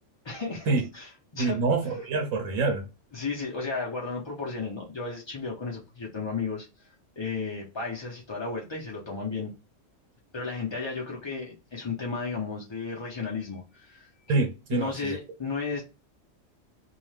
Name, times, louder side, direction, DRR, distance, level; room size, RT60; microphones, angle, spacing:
voice 1, 0.2-1.7 3.1-6.9 7.2-9.5 10.3-14.1 14.7-15.8, left 4 dB, 40° left, 0.4 m, -34 dB
voice 2, 1.4-2.8 14.3-15.2, right 3 dB, 90° right, 1.1 m, -26 dB
2.7 x 2.1 x 3.2 m
omnidirectional pair, 1.3 m